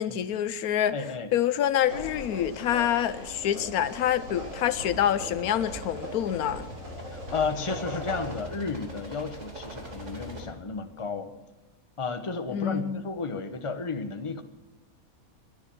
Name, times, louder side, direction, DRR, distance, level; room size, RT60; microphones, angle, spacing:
voice 1, 0.0-0.9 1.3-6.7 12.5-13.1, left 10 dB, 90° left, 1.2 m, -26 dB
voice 2, 0.9-1.3 7.1-11.3 12.0-14.4, left 4 dB, 25° left, 1.0 m, -33 dB
sound 1, 1.8-10.4, equal, 55° right, 3.5 m, -44 dB
sound 2, 1.8-8.4, right 1 dB, 70° right, 6.2 m, -39 dB
22.0 x 10.0 x 6.1 m
omnidirectional pair, 1.5 m